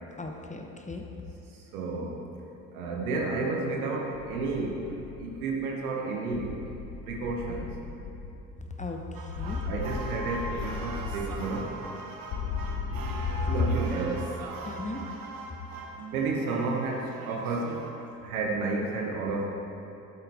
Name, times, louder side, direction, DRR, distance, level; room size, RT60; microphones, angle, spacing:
voice 1, 0.2-1.0 8.8-9.6 13.4-13.5 14.6-15.0, left 2 dB, 15° left, 3 dB, 1.0 m, -37 dB
voice 2, 1.7-2.2 2.7-4.9 5.2-6.7 7.1-7.7 9.6-11.7 13.5-14.2 16.1-17.7 18.2-19.5, right 3 dB, 75° right, -1 dB, 1.4 m, -31 dB
sound 1, 4.1-5.3 6.3-8.3 9.3-11.4 12.3-13.6, left 5 dB, 55° left, 1.1 m, -36 dB
sound 2, 9.1-17.9, right 2 dB, 50° right, 1.3 m, -41 dB
11.5 x 8.9 x 3.7 m, 3.0 s
figure-of-eight pair, 50°, 44 cm